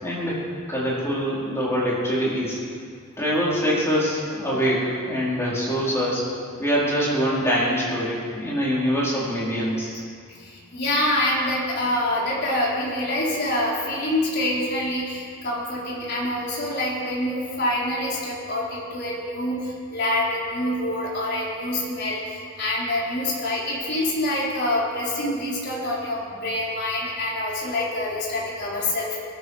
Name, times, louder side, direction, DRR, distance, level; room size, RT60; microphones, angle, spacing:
voice 1, 0.0-2.6 3.2-6.2 6.6-10.0, equal, 15° left, -7 dB, 4.5 m, -24 dB
voice 2, 10.4-29.2, left 1 dB, 55° left, -5 dB, 4.0 m, -26 dB
21.0 x 12.5 x 4.9 m, 2.2 s
head